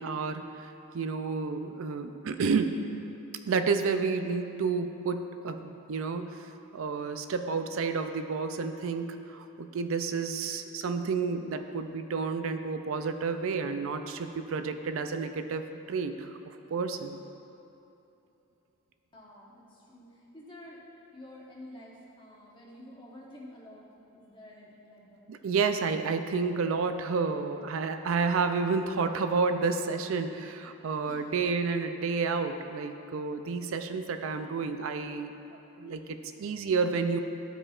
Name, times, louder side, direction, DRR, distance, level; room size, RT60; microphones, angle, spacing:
voice 1, 0.0-2.8 3.4-6.5 6.7-16.3 16.7-17.2 25.3-35.3 35.8-37.2, right 4 dB, 65° right, 8 dB, 0.4 m, -30 dB
voice 2, 19.1-20.8 21.1-25.3 31.0-31.5 35.9-36.1, left 1 dB, 20° left, -5 dB, 1.1 m, -50 dB
13.0 x 5.0 x 2.4 m, 2.9 s
head